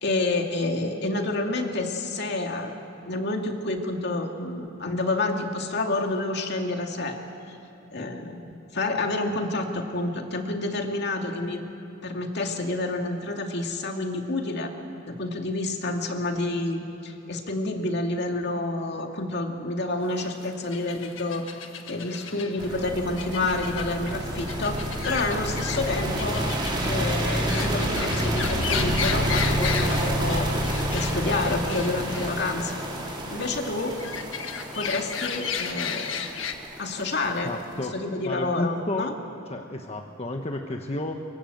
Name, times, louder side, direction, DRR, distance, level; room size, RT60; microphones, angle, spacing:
voice 1, 0.0-2.8 3.1-7.2 7.5-7.6 7.9-11.6 12.0-14.7 15.1-26.5 26.8-30.7 30.9-32.8 33.3-34.0 34.7-36.2 36.8-37.5 37.9-39.1, left 2 dB, 55° left, 3 dB, 2.4 m, -29 dB
sound 1, 20.0-36.5, left 7 dB, 80° left, 1.6 m, -35 dB
sound 2, 22.6-37.7, right 1 dB, 25° right, 4.3 m, -28 dB
voice 2, 37.4-38.0 38.2-39.2 39.5-41.2, left 1 dB, 30° left, 3 dB, 1.2 m, -31 dB
24.5 x 24.0 x 7.9 m, 2.9 s
head